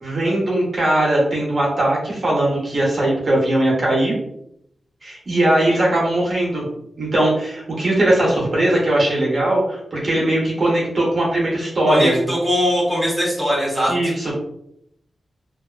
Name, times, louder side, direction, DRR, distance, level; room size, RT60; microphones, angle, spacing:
voice 1, 0.0-4.1 5.0-6.6 7.0-12.1 13.9-14.3, right 1 dB, 40° right, -4 dB, 0.8 m, -19 dB
voice 2, 11.8-14.1, equal, 5° right, -6 dB, 0.8 m, -20 dB
2.5 x 2.3 x 2.3 m, 0.76 s
wide cardioid pair, 155°, 0 cm